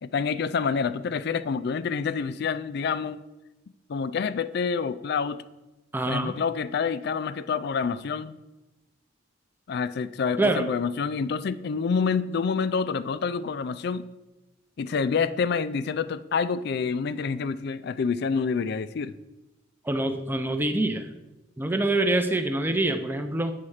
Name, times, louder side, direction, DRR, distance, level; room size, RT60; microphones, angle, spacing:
voice 1, 0.0-3.2 3.9-5.4 6.1-8.4 9.7-14.1 14.8-19.1, left 5 dB, 55° left, 14 dB, 0.4 m, -27 dB
voice 2, 5.9-6.4 10.4-10.6 19.8-21.1 21.6-23.5, right 2 dB, 10° right, 7 dB, 0.5 m, -25 dB
8.4 x 4.3 x 6.4 m, 1.1 s
head